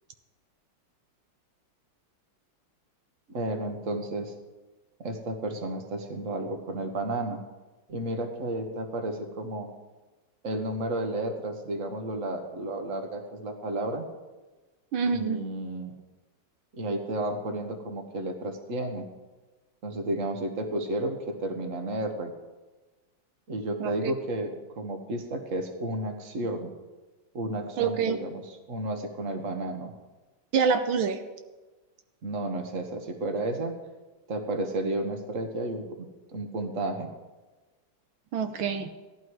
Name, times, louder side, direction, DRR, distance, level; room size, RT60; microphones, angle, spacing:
voice 1, 3.3-4.3 5.0-7.4 7.9-9.7 10.4-14.1 15.1-15.9 16.7-19.1 19.8-22.3 23.5-26.7 27.3-28.4 28.7-29.9 32.2-33.7 34.3-36.1 36.3-37.1, right 1 dB, 40° right, 5 dB, 1.8 m, -32 dB
voice 2, 14.9-15.4 23.8-24.1 27.8-28.2 30.5-31.2 38.3-38.9, right 6 dB, 80° right, 7 dB, 1.6 m, -26 dB
17.0 x 12.0 x 4.8 m, 1.2 s
omnidirectional pair, 2.2 m